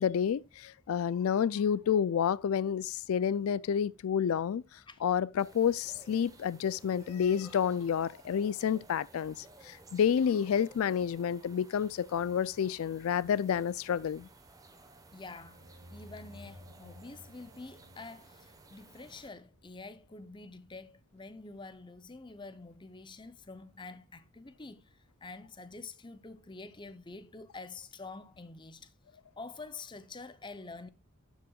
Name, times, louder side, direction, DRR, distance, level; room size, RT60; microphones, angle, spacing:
voice 1, 0.0-14.3, left 8 dB, 80° left, 0.3 m, -29 dB
sound 1, 5.4-19.3, right 2 dB, 15° right, 1.0 m, -57 dB
voice 2, 15.1-28.9 29.4-30.9, left 3 dB, 20° left, 0.6 m, -47 dB
sound 2, 15.3-19.9, equal, 65° right, 1.9 m, -55 dB
11.5 x 7.2 x 2.3 m
head